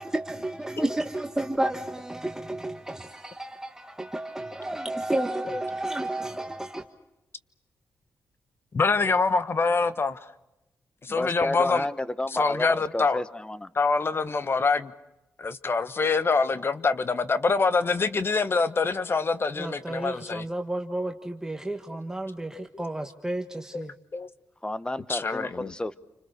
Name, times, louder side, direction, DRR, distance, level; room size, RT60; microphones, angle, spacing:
voice 1, 0.0-6.8 19.6-23.9, right 1 dB, 10° right, 1.5 m, -32 dB
voice 2, 8.7-10.3 11.0-11.9 12.3-13.2 13.7-14.9 15.4-20.4 22.5-22.8 23.7-24.3 25.1-25.7, left 4 dB, 45° left, 1.2 m, -25 dB
voice 3, 11.1-13.7 24.6-25.9, left 1 dB, 15° left, 1.2 m, -31 dB
29.0 x 26.0 x 6.6 m
cardioid pair, 80°, 6 cm